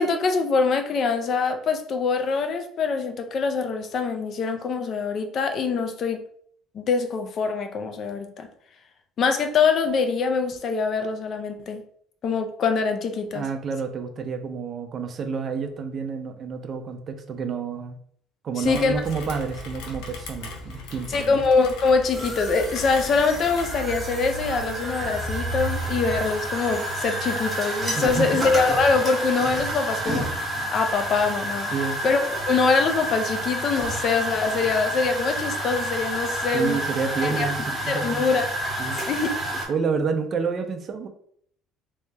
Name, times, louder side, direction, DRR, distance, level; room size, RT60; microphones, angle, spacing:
voice 1, 0.0-6.2 6.7-8.5 9.2-11.8 12.2-13.4 18.6-18.9 21.1-30.3 30.7-31.7 32.0-36.8 37.2-37.5 37.9-38.5 39.1-39.4, left 4 dB, 35° left, 0.4 m, -24 dB
voice 2, 13.3-18.0 18.4-21.4 27.9-28.4 31.7-32.0 36.5-38.3 38.8-39.0 39.7-41.1, right 5 dB, 30° right, 0.4 m, -29 dB
Rain, 18.6-23.8, left 2 dB, 80° left, 0.7 m, -38 dB
sound 1, 22.1-39.6, right 1 dB, 5° right, 1.0 m, -29 dB
3.3 x 2.7 x 3.3 m
cardioid pair, 165°, 0 cm